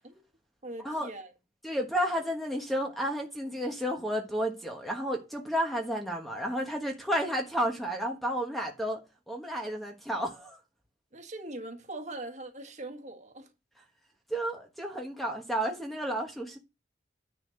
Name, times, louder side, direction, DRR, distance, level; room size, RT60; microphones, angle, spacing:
voice 1, 0.6-1.3 11.1-13.5, right 2 dB, 40° right, 1.6 m, -41 dB
voice 2, 1.6-9.0 9.3-10.6 14.3-16.6, equal, ahead, 1.3 m, -32 dB
9.9 x 4.2 x 6.4 m
head